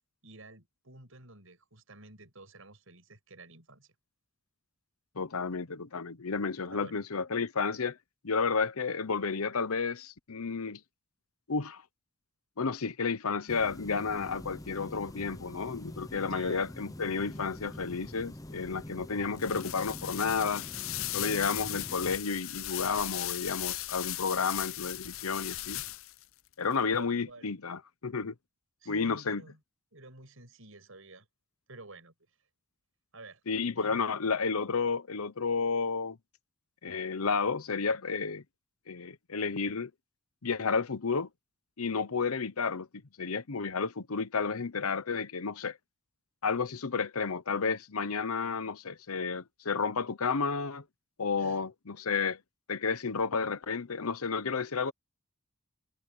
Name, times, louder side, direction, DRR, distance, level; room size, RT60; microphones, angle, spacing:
voice 1, 0.2-3.9 6.7-7.0 16.3-16.7 26.9-27.6 28.8-29.6 29.9-31.3 31.7-32.1 33.1-33.4 33.8-34.0 51.4-51.6, right 2 dB, 70° right, 7.3 m, -51 dB
voice 2, 5.2-8.0 8.2-10.8 11.5-11.8 12.6-20.7 21.1-25.8 26.6-28.3 28.9-29.4 33.5-36.2 36.8-38.4 38.9-39.9 40.4-41.3 41.8-42.9 43.2-45.8 46.4-50.8 51.2-52.4 52.7-54.9, left 5 dB, 85° left, 0.9 m, -31 dB
sound 1, 13.5-22.2, left 1 dB, 15° left, 0.9 m, -45 dB
sound 2, 19.4-26.2, left 16 dB, 65° left, 0.6 m, -37 dB
head